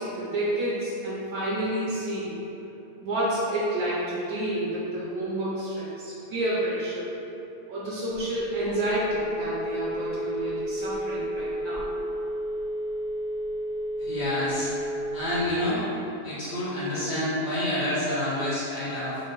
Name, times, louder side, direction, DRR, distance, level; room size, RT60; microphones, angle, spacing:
voice 1, 0.0-2.3 3.0-7.1 7.7-11.8, right 1 dB, 80° right, -8 dB, 1.1 m, -29 dB
Telephone, 8.2-15.5, equal, 65° left, 1.3 m, -31 dB
voice 2, 14.0-14.7 15.1-15.8 16.2-19.2, left 1 dB, 45° left, -11 dB, 1.3 m, -28 dB
3.9 x 2.1 x 3.8 m, 3.0 s
omnidirectional pair, 1.5 m